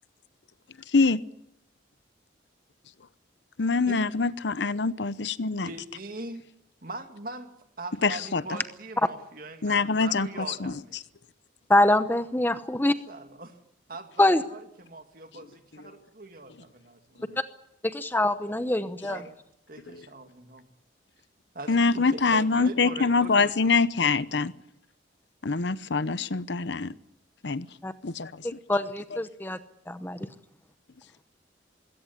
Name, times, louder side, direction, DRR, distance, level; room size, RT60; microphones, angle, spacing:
voice 1, 3.6-5.7 8.0-8.4 9.6-10.7 19.9-20.0 21.7-24.5 25.4-26.9 27.4-27.7 28.0-28.3, left 4 dB, 70° left, 16 dB, 0.8 m, -24 dB
voice 2, 5.7-6.4 6.8-7.5 7.8-11.0 12.3-12.4 13.1-13.6 13.9-17.3 19.1-19.4 19.7-20.7 21.5-23.5, right 2 dB, 50° right, 6 dB, 2.3 m, -41 dB
voice 3, 11.7-12.9 14.2-14.4 17.8-19.2 27.8-27.9 28.4-29.6 29.9-30.2, left 1 dB, 10° left, 11 dB, 0.8 m, -24 dB
21.0 x 16.5 x 9.8 m, 0.80 s
head